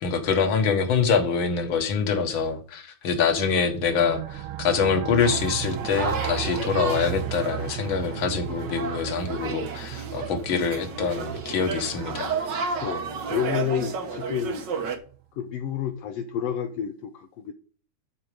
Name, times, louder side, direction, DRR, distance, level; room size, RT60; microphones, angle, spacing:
voice 1, 0.0-12.3, left 6 dB, 50° left, 6 dB, 2.0 m, -25 dB
sound 1, 3.8-15.2, right 13 dB, 80° right, 2.0 m, -36 dB
sound 2, 5.2-15.0, right 5 dB, 50° right, 1.4 m, -32 dB
voice 2, 12.8-14.6 15.3-17.5, left 9 dB, 75° left, 6 dB, 1.6 m, -30 dB
13.0 x 4.7 x 5.1 m, 0.42 s
omnidirectional pair, 3.4 m